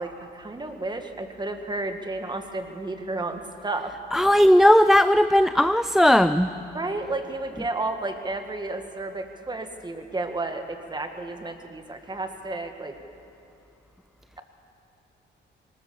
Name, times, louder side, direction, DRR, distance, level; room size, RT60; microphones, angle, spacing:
voice 1, 0.0-3.9 6.7-13.0, right 2 dB, 20° right, 6 dB, 1.9 m, -32 dB
voice 2, 4.1-6.5, equal, ahead, 11 dB, 0.4 m, -17 dB
19.5 x 19.0 x 7.0 m, 2.9 s
cardioid pair, 90°, 20 cm